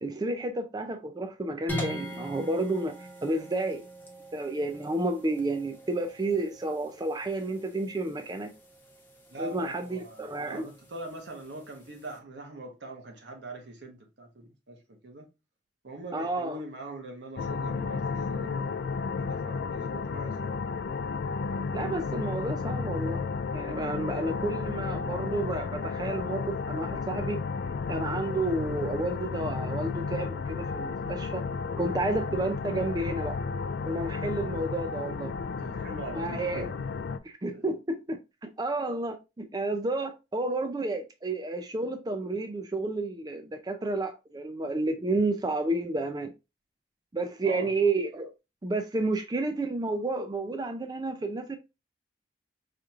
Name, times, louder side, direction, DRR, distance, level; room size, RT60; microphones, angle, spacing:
voice 1, 0.0-3.8 4.3-8.5 9.4-10.7 16.1-16.6 21.7-23.2 23.5-27.4 27.9-31.5 31.8-33.4 33.9-35.3 36.1-36.7 37.2-46.3 47.1-48.3 48.6-51.6, right 2 dB, 20° right, 0.4 m, -31 dB
sound 1, 1.7-12.2, equal, 10° left, 1.0 m, -43 dB
voice 2, 9.3-15.3 15.8-18.8 19.2-20.5 35.6-36.7 37.5-37.7 47.4-47.7, right 2 dB, 80° right, 1.1 m, -42 dB
sound 2, 17.4-37.2, left 5 dB, 65° left, 0.3 m, -33 dB
4.9 x 2.9 x 2.4 m
head